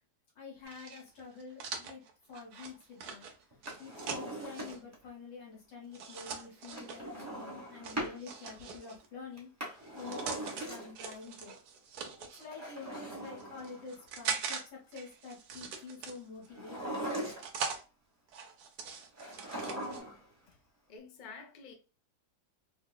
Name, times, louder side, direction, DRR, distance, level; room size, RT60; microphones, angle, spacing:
voice 1, 0.4-2.0 2.3-3.3 3.8-9.5 9.9-11.5 12.2-17.0, left 5 dB, 85° left, 2.4 m, -48 dB
sound 1, 0.6-4.8 5.9-7.0 7.8-9.1 9.8-10.6 10.9-12.5 13.1-14.6 14.9-16.5 17.0-17.8 18.3-20.0, right 6 dB, 65° right, 1.2 m, -41 dB
Drawer open or close, 3.5-5.0 6.7-8.2 9.4-11.1 12.4-14.0 16.5-17.7 19.2-20.3 20.5-20.6, right 1 dB, 10° right, 1.0 m, -40 dB
voice 2, 20.9-21.7, left 5 dB, 50° left, 0.5 m, -49 dB
4.7 x 2.3 x 2.2 m
omnidirectional pair, 1.9 m